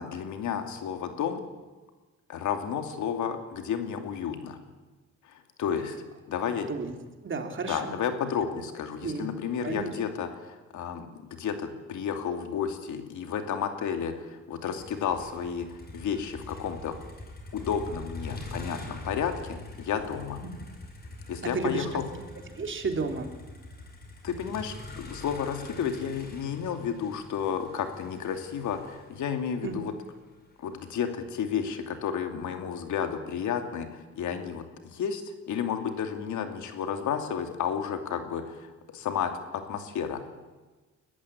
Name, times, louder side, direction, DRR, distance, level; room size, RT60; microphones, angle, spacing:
voice 1, 0.0-1.4 2.3-4.6 5.2-6.0 6.3-6.7 7.7-17.0 17.5-20.4 21.3-22.0 24.2-29.9 30.6-40.2, left 7 dB, 75° left, 6 dB, 2.7 m, -32 dB
voice 2, 6.3-6.9 7.2-8.0 9.0-9.3 9.6-9.9 21.4-22.0 22.6-23.3 29.6-29.8, right 4 dB, 40° right, 5 dB, 3.5 m, -32 dB
Motor vehicle (road), 14.8-30.9, left 1 dB, 30° left, 5.4 m, -44 dB
21.5 x 14.5 x 10.0 m, 1.3 s
cardioid pair, 90°, 30 cm